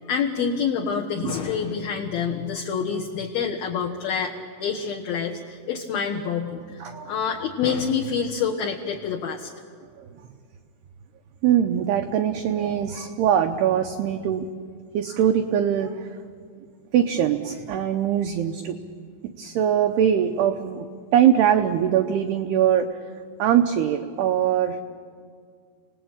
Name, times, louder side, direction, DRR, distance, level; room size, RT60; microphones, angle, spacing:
voice 1, 0.1-4.3 4.6-9.5, left 6 dB, 65° left, -1 dB, 2.6 m, -27 dB
voice 2, 6.8-7.1 10.0-10.1 11.4-14.5 14.9-16.2 16.9-18.8 19.2-20.9 21.1-23.0 23.4-24.8, right 9 dB, 85° right, 7 dB, 2.3 m, -22 dB
29.5 x 19.5 x 8.8 m, 2.1 s
omnidirectional pair, 5.8 m